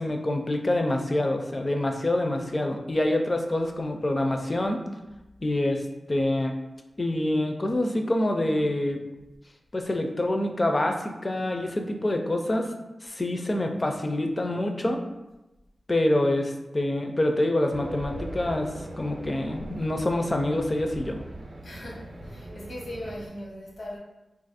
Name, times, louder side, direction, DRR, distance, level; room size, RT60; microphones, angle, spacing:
voice 1, 0.0-4.8 5.4-5.8 6.1-6.5 7.0-9.0 9.7-12.7 13.0-15.0 15.9-21.2, left 1 dB, 30° left, 4 dB, 0.4 m, -26 dB
Race car auto racing, 17.7-23.3, right 2 dB, 50° right, 0.5 m, -40 dB
voice 2, 21.6-24.0, left 1 dB, 75° left, -3 dB, 0.9 m, -39 dB
2.8 x 2.5 x 4.0 m, 1.0 s
wide cardioid pair, 110°, 0 cm